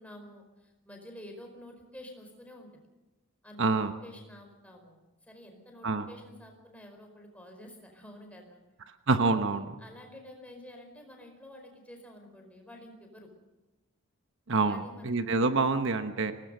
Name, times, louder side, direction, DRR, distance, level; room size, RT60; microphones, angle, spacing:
voice 1, 0.0-2.7 3.4-3.8 4.0-8.6 9.8-13.3 14.7-15.2, left 1 dB, 5° left, 3 dB, 4.8 m, -49 dB
voice 2, 3.6-3.9 5.8-6.1 9.1-9.7 14.5-16.3, right 3 dB, 60° right, 8 dB, 1.2 m, -27 dB
25.0 x 19.0 x 6.8 m, 1.1 s
head